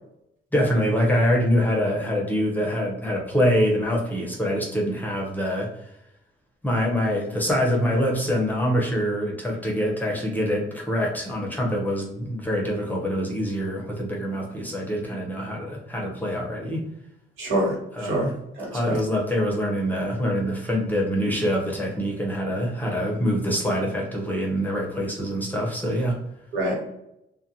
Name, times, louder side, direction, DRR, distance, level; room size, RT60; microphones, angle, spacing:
voice 1, 0.5-5.7 6.6-16.8 17.9-18.3 18.7-26.2, equal, 10° left, -2 dB, 0.7 m, -25 dB
voice 2, 17.4-18.3 18.6-19.0 26.5-26.7, right 1 dB, 80° right, -4 dB, 1.3 m, -26 dB
2.4 x 2.2 x 2.7 m, 0.82 s
cardioid pair, 90°, 20 cm